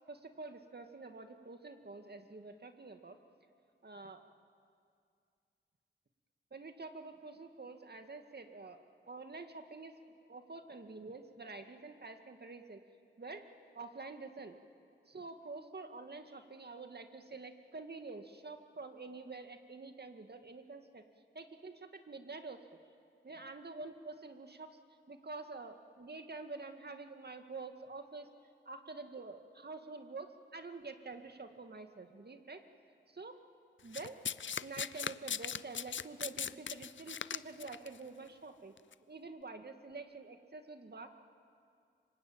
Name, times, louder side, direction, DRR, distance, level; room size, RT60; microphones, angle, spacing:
voice 1, 0.1-3.2 3.8-4.2 6.5-8.8 9.1-10.0 10.3-12.8 13.2-13.4 13.7-14.6 15.1-21.0 21.3-22.6 23.2-24.8 25.1-28.3 28.7-32.6 33.1-33.4 33.8-34.2 34.6-38.8 39.1-41.1, right 3 dB, 50° right, 6 dB, 2.3 m, -47 dB
Domestic sounds home sounds, 33.9-37.9 38.8-38.9, left 7 dB, 65° left, 0.6 m, -39 dB
26.5 x 24.5 x 9.0 m, 2.3 s
cardioid pair, 45°, 21 cm